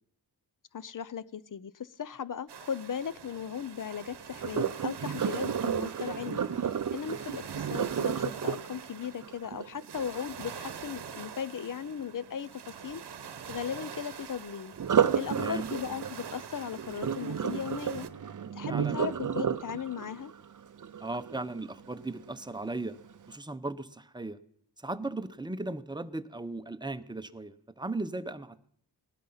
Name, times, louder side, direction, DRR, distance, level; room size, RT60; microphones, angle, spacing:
voice 1, 0.7-6.4 6.9-13.0 13.5-14.7 15.1-18.1 18.5-20.3, left 8 dB, 50° left, 18 dB, 0.6 m, -37 dB
sound 1, 2.5-18.1, right 7 dB, 70° right, 0.9 m, -45 dB
Sink (filling or washing), 4.4-10.4 14.7-21.8 22.3-22.6 23.1-23.2, right 8 dB, 50° right, 0.6 m, -32 dB
voice 2, 15.3-15.7 18.7-19.0 21.0-22.9 23.3-24.4 24.8-28.7, right 2 dB, 10° right, 10 dB, 0.7 m, -37 dB
18.5 x 11.5 x 5.7 m, 0.66 s
wide cardioid pair, 85°, 41 cm